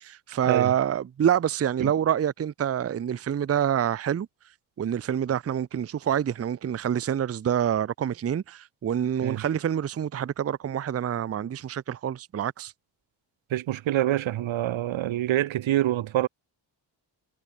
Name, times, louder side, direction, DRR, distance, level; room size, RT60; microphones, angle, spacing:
voice 1, 0.0-4.3 4.8-12.7, right 9 dB, 35° right, 0.6 m, -27 dB
voice 2, 13.5-16.3, right 13 dB, 85° right, 1.1 m, -26 dB
wide cardioid pair, 150°, 45 cm